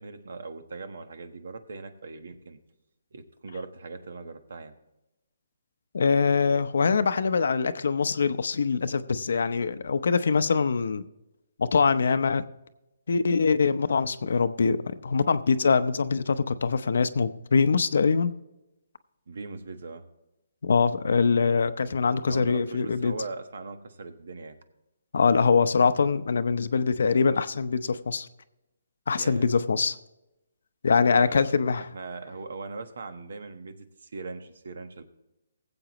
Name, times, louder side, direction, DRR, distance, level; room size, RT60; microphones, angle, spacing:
voice 1, 0.0-2.6 3.1-4.8 19.3-20.1 22.2-24.6 29.1-29.5 31.0-31.5 31.9-35.0, right 3 dB, 65° right, 9 dB, 1.3 m, -40 dB
voice 2, 5.9-11.0 11.6-12.4 13.1-18.3 20.6-23.1 25.1-28.3 29.1-30.0 30.8-31.9, left 5 dB, 65° left, 12 dB, 0.7 m, -23 dB
20.0 x 8.0 x 3.0 m, 0.95 s
hypercardioid pair, 165°, 0 cm